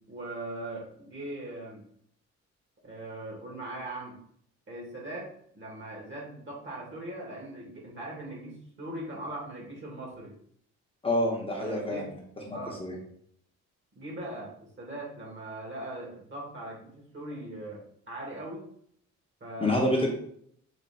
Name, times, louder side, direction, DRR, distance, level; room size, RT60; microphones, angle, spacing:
voice 1, 0.1-1.8 2.8-4.2 4.7-5.3 5.5-10.3 11.6-12.1 12.5-12.8 14.0-14.5 14.8-17.8 18.1-18.7 19.4-19.8, right 1 dB, 40° right, -1 dB, 1.9 m, -40 dB
voice 2, 11.0-12.2 12.5-12.9 19.6-20.1, left 1 dB, 20° left, -2 dB, 1.1 m, -27 dB
4.3 x 3.0 x 4.2 m, 0.66 s
cardioid pair, 90°, 30 cm